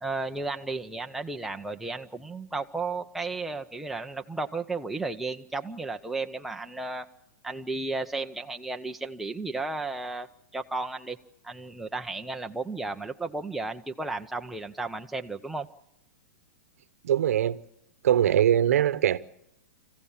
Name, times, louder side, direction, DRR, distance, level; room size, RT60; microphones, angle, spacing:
voice 1, 0.0-7.1 7.4-10.3 10.5-11.2 11.4-15.7, right 3 dB, 5° right, 0.7 m, -33 dB
voice 2, 17.0-17.6 18.0-19.2, right 10 dB, 75° right, 0.9 m, -22 dB
26.5 x 15.5 x 7.2 m
hypercardioid pair, 145°, 8 cm